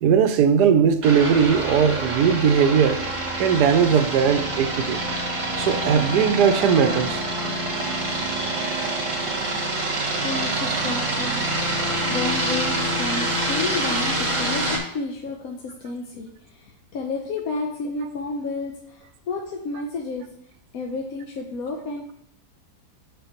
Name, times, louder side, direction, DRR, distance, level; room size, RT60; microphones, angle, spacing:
voice 1, 0.0-3.0 3.4-5.0 5.6-7.2, right 7 dB, 75° right, 1.2 m, -19 dB
sound 1, 1.0-14.8, right 1 dB, 20° right, 1.0 m, -26 dB
voice 2, 10.1-20.3 20.7-22.1, left 3 dB, 65° left, 1.1 m, -31 dB
8.2 x 4.9 x 3.0 m
omnidirectional pair, 1.8 m